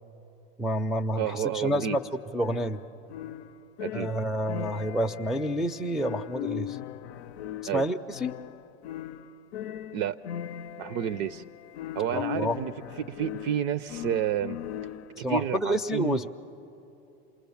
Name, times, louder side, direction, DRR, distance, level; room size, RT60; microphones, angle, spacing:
voice 1, 0.6-2.0 2.3-2.8 3.9-6.8 7.7-8.3 12.1-12.6 15.2-16.3, equal, ahead, 0.4 m, -29 dB
voice 2, 1.2-2.0 3.8-4.1 7.6-7.8 9.9-10.2 10.8-11.4 12.0-14.6 15.2-16.3, right 10 dB, 55° right, 0.6 m, -30 dB
sound 1, 1.7-15.3, left 11 dB, 80° left, 0.6 m, -39 dB
27.5 x 20.0 x 7.1 m
hypercardioid pair, 105°, 33 cm